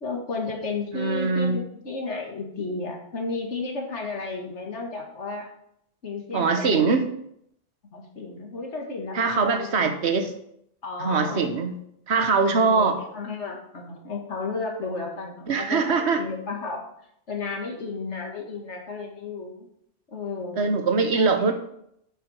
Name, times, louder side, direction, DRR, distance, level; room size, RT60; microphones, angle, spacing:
voice 1, 0.0-5.5 6.0-6.9 7.9-9.9 10.8-11.6 12.4-16.9 17.3-19.7 20.1-20.6 21.2-21.5, left 3 dB, 90° left, 0 dB, 2.2 m, -33 dB
voice 2, 0.9-1.6 6.3-7.1 9.1-10.3 11.0-11.8 12.1-13.0 15.5-16.2 20.6-21.5, right 4 dB, 70° right, 7 dB, 1.3 m, -22 dB
9.3 x 7.8 x 4.4 m, 0.73 s
omnidirectional pair, 1.2 m